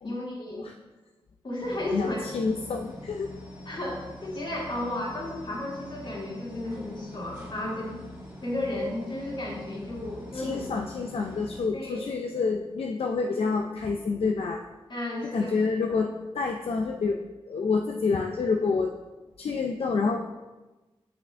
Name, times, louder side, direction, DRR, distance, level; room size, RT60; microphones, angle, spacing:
voice 1, 0.0-0.7 1.4-2.2 3.7-8.0 8.4-10.7 11.7-12.1 14.9-15.6, left 1 dB, 50° left, -3 dB, 2.4 m, -33 dB
sound 1, 1.6-11.7, left 1 dB, 20° right, 2.3 m, -44 dB
voice 2, 1.9-3.3 10.3-14.6 15.2-17.2 17.5-18.9 19.4-20.2, left 4 dB, 75° left, 3 dB, 0.5 m, -28 dB
8.3 x 6.0 x 3.4 m, 1.2 s
cardioid pair, 60°, 10 cm